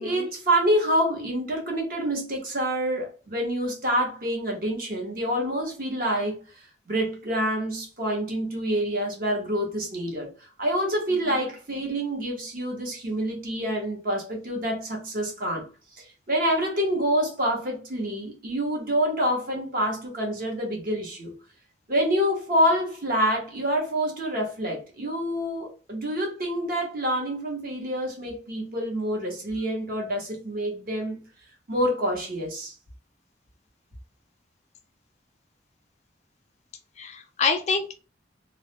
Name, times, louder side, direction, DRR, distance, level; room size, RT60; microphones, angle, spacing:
voice 1, 0.0-6.4 6.9-15.7 16.0-21.3 21.9-31.2 31.7-32.7, equal, 50° right, 0.9 m, -27 dB
voice 2, 37.0-37.9, left 4 dB, 40° left, 0.3 m, -27 dB
2.3 x 2.1 x 2.9 m
head